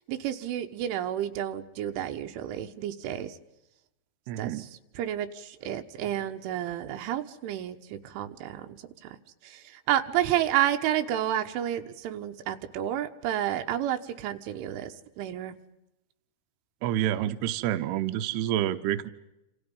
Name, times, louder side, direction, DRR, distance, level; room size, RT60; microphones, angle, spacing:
voice 1, 0.1-3.3 4.4-4.7 5.0-8.8 9.4-9.6 9.9-15.6, right 11 dB, 90° right, 8 dB, 3.8 m, -30 dB
voice 2, 4.3-4.7 16.8-19.1, right 12 dB, 75° right, 9 dB, 2.8 m, -28 dB
29.0 x 28.5 x 5.5 m, 0.90 s
omnidirectional pair, 5.4 m